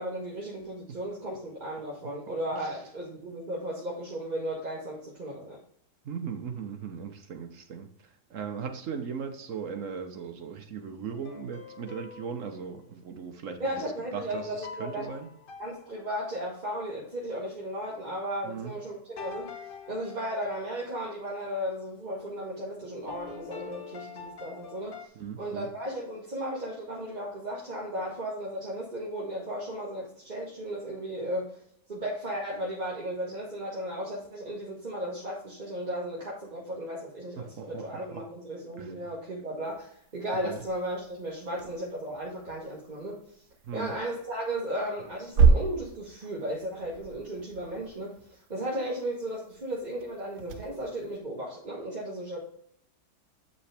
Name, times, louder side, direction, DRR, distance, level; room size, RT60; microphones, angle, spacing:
voice 1, 0.0-5.6 13.6-15.1 15.6-19.5 19.9-25.1 25.4-31.5 31.9-43.2 43.7-52.4, right 1 dB, 30° right, -5 dB, 1.4 m, -35 dB
voice 2, 6.0-13.7 14.1-15.3 18.4-18.8 25.1-25.7 37.4-38.2 38.8-38.9 40.4-40.6 43.6-44.0, right 6 dB, 55° right, 6 dB, 1.0 m, -38 dB
sound 1, 11.1-12.7 14.3-16.5 19.2-21.2 23.1-25.1, left 6 dB, 55° left, 0.6 m, -45 dB
sound 2, 39.6-51.2, right 5 dB, 75° right, 1.3 m, -31 dB
8.4 x 5.3 x 3.4 m, 0.69 s
omnidirectional pair, 1.8 m